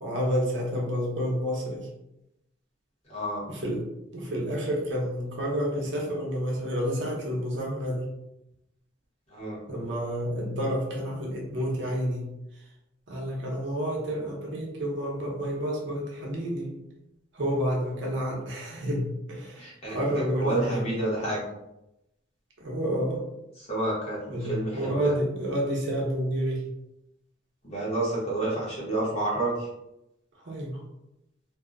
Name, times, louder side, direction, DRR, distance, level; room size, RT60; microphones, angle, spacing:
voice 1, 0.0-1.9 3.5-3.9 4.1-8.1 9.7-12.3 13.1-16.7 17.3-20.8 22.6-23.2 24.3-26.6 30.4-30.8, equal, 65° right, -2 dB, 0.7 m, -29 dB
voice 2, 3.1-3.4 9.3-9.6 19.6-21.5 23.6-24.2 24.5-25.1 27.6-29.7, right 2 dB, 35° left, -6 dB, 0.9 m, -29 dB
2.6 x 2.0 x 2.4 m, 0.87 s
head